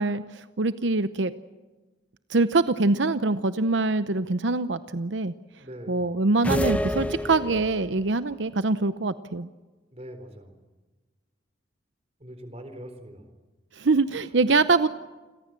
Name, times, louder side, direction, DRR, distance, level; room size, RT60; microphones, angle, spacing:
voice 1, 0.0-1.3 2.3-5.3 5.9-9.5 13.8-14.9, right 3 dB, 85° right, 12 dB, 0.8 m, -24 dB
voice 2, 5.6-6.1 9.9-10.7 12.2-13.3, equal, 35° right, 8 dB, 4.1 m, -42 dB
sound 1, 6.4-8.0, left 1 dB, 10° left, 1.1 m, -28 dB
29.5 x 22.5 x 7.5 m, 1.2 s
head